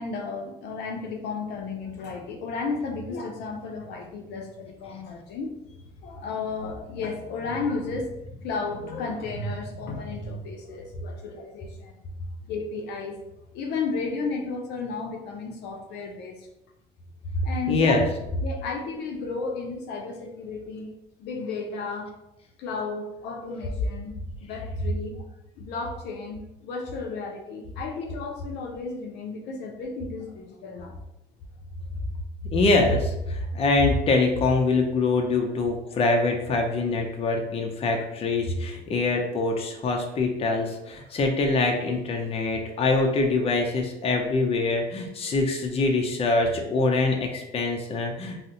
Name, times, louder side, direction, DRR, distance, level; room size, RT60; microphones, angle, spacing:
voice 1, 0.0-12.0 12.4-13.2 13.5-16.5 17.4-18.0 18.4-20.9 21.2-22.1 22.6-24.1 24.4-25.2 25.6-31.0 35.8-35.9, left 4 dB, 80° left, 1 dB, 0.5 m, -33 dB
voice 2, 17.7-18.0 32.4-48.5, left 3 dB, 35° left, 2 dB, 0.5 m, -24 dB
2.6 x 2.1 x 3.7 m, 0.90 s
cardioid pair, 110°, 17 cm